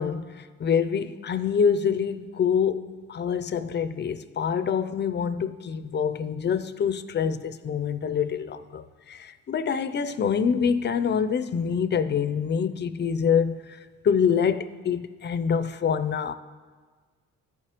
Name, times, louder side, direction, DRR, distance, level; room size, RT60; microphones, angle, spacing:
voice 1, 0.0-13.8 14.0-16.3, left 7 dB, 35° left, 0.4 m, -26 dB
14.5 x 4.8 x 2.9 m
cardioid pair, 90°, 30 cm